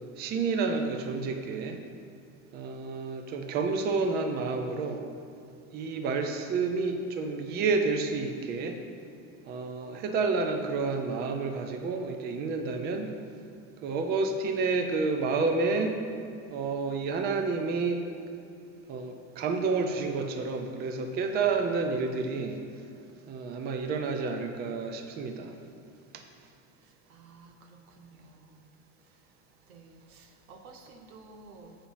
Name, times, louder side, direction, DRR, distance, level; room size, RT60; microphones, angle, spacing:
voice 1, 0.0-1.8 2.5-5.0 5.7-8.8 9.5-13.1 13.8-16.0 16.5-18.0 18.9-22.6 23.3-25.5, right 4 dB, 25° right, 5 dB, 0.5 m, -29 dB
voice 2, 26.8-28.6 29.7-31.8, right 3 dB, 85° right, 5 dB, 1.2 m, -53 dB
7.2 x 5.0 x 7.2 m, 2.5 s
supercardioid pair, 140°, 41 cm